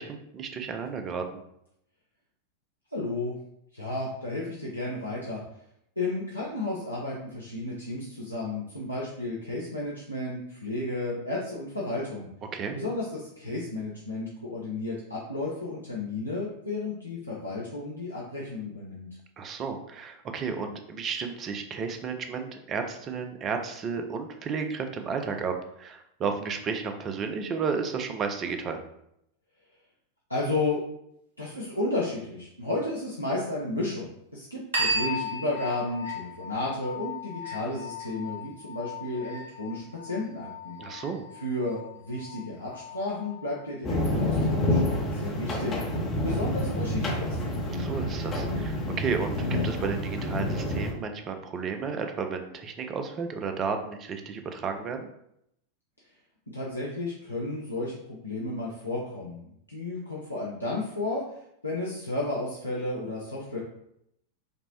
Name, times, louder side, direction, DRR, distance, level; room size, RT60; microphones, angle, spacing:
voice 1, 0.0-1.4 12.5-12.8 19.4-28.8 40.8-41.3 47.7-55.1, right 5 dB, 30° right, 6 dB, 0.4 m, -33 dB
voice 2, 2.9-3.4 3.7-5.4 6.0-12.3 12.7-19.1 30.3-30.8 31.4-40.8 41.4-47.6 56.5-61.2 61.6-63.6, left 2 dB, 85° left, -5 dB, 0.6 m, -33 dB
sound 1, 34.7-43.8, left 1 dB, 65° right, 1.1 m, -36 dB
sound 2, 43.8-50.9, left 1 dB, 25° left, 0.7 m, -28 dB
5.1 x 2.1 x 2.8 m, 0.76 s
figure-of-eight pair, 90°, 0 cm